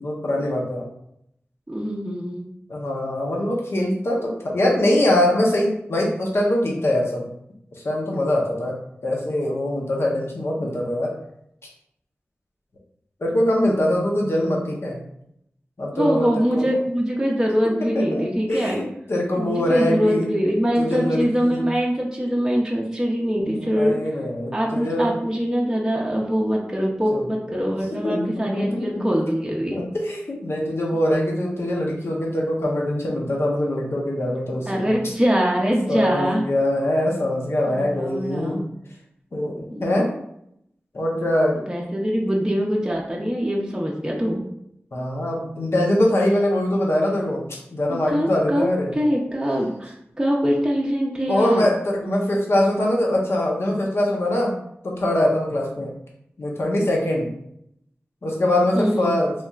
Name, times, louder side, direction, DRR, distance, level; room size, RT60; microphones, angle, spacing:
voice 1, 0.0-0.8 2.7-7.3 7.8-8.7 9.0-11.1 13.2-15.0 15.8-16.7 17.9-18.8 19.1-20.3 20.8-21.6 23.4-25.1 27.1-27.2 27.5-27.6 27.9-29.1 29.7-35.0 35.9-38.6 39.3-40.1 40.9-41.6 44.9-48.9 51.3-54.5 54.8-55.9 56.4-57.3 58.2-59.3, left 1 dB, 70° left, -2 dB, 0.7 m, -23 dB
voice 2, 1.7-2.5 15.9-18.8 19.4-24.0 24.5-29.8 34.7-36.4 37.7-38.7 39.7-39.9 41.7-44.5 47.9-51.6 58.8-59.1, equal, 15° right, -2 dB, 0.5 m, -23 dB
3.2 x 2.7 x 2.3 m, 0.76 s
cardioid pair, 45°, 4 cm